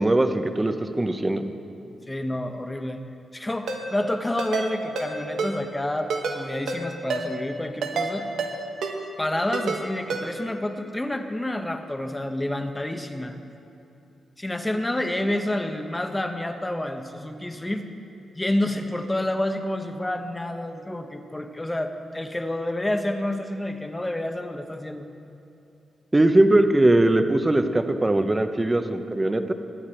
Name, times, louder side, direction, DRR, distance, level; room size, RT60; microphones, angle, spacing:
voice 1, 0.0-1.5 26.1-29.5, right 1 dB, 15° right, 8 dB, 0.8 m, -20 dB
voice 2, 2.1-3.0 3.3-8.3 9.2-13.4 14.4-17.8 18.3-25.1, left 1 dB, 15° left, 6 dB, 0.9 m, -29 dB
Ringtone, 3.7-3.8 4.4-4.7 5.0-5.1 5.4-5.5 6.1-6.4 6.7-6.8 7.1-7.2 7.8-8.1 8.4-8.5 8.8-8.9 9.5-9.8 10.1-10.2, right 5 dB, 85° right, 1.4 m, -27 dB
22.0 x 9.6 x 4.5 m, 2.7 s
cardioid pair, 100°, 0 cm